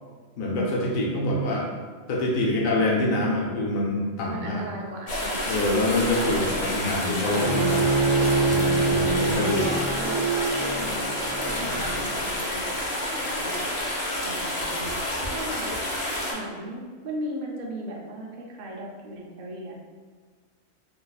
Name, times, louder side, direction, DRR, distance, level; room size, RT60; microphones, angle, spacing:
voice 1, 0.4-1.7 2.1-4.7 5.5-7.9 8.4-9.7 11.6-11.9, left 1 dB, 80° left, -2 dB, 1.1 m, -26 dB
voice 2, 4.3-5.4 6.5-6.9 8.1-10.2 10.6-11.1 11.5-12.7 13.2-13.6 14.2-14.9 15.3-15.7 16.3-19.7, right 1 dB, 60° right, -2 dB, 0.5 m, -37 dB
sound 1, 5.1-16.3, left 1 dB, 45° left, 0.5 m, -29 dB
Bowed string instrument, 7.3-12.4, right 3 dB, 75° right, 1.0 m, -26 dB
2.8 x 2.3 x 4.0 m, 1.5 s
omnidirectional pair, 1.4 m